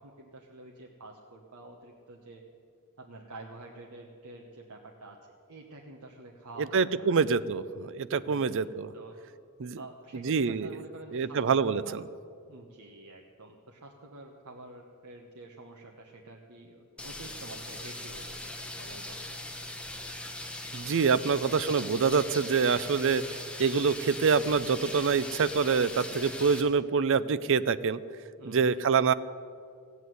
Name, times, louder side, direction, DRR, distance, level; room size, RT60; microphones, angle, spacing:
voice 1, 0.0-2.4 3.0-7.1 8.2-8.6 8.9-9.2 9.8-12.0 12.5-19.4 28.4-28.8, right 2 dB, 80° right, 0 dB, 1.2 m, -48 dB
voice 2, 6.6-8.9 9.6-9.8 10.1-10.8 11.1-12.0 20.7-28.0 28.5-29.1, right 5 dB, 60° right, 15 dB, 0.5 m, -26 dB
sound 1, 17.0-26.6, left 1 dB, 5° left, 1.2 m, -40 dB
15.5 x 8.3 x 9.4 m, 2.4 s
head